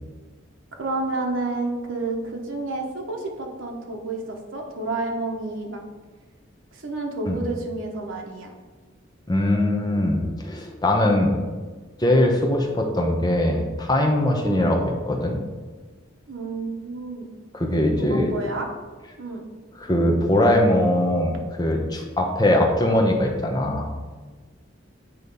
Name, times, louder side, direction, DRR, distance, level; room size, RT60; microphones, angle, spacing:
voice 1, 0.8-5.8 6.7-8.5 14.4-14.7 16.3-17.3 18.0-18.7 19.2-19.4, right 2 dB, 85° right, 1 dB, 1.0 m, -30 dB
voice 2, 9.3-11.4 12.0-15.4 17.5-18.3 19.8-21.3 21.6-23.9, left 1 dB, 20° left, 1 dB, 0.8 m, -21 dB
8.2 x 3.1 x 5.3 m, 1.4 s
head